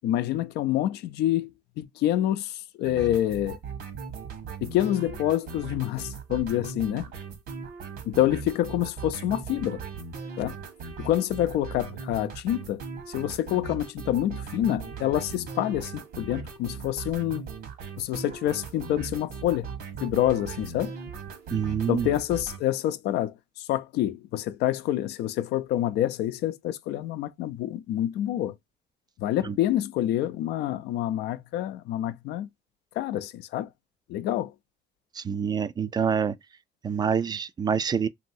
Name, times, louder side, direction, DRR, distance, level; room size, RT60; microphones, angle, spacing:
voice 1, 0.0-1.5 1.8-3.6 4.6-7.1 8.1-9.8 10.4-10.6 11.0-12.8 13.1-17.4 18.0-19.7 20.0-20.9 21.9-28.5 29.2-32.5 33.0-33.7 34.1-34.5, left 13 dB, 80° left, 0.5 m, -27 dB
sound 1, 2.8-22.6, right 5 dB, 65° right, 1.2 m, -39 dB
voice 2, 21.5-22.1 29.4-29.6 35.1-36.4 36.8-38.1, right 7 dB, 25° right, 0.3 m, -26 dB
3.1 x 2.7 x 2.6 m
cardioid pair, 110°, 17 cm